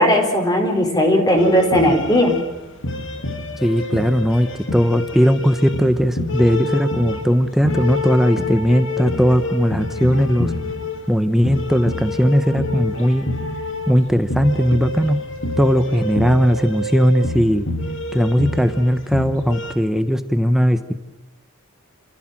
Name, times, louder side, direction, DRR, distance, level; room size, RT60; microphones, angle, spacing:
voice 1, 0.0-2.4, equal, 20° left, 3 dB, 4.5 m, -16 dB
sound 1, 1.4-19.7, left 2 dB, 60° left, 2.5 m, -28 dB
voice 2, 3.6-10.5 11.1-13.3 13.9-15.2 15.6-17.7 18.1-20.9, equal, ahead, 9 dB, 1.0 m, -18 dB
28.0 x 16.0 x 7.6 m, 1.1 s
head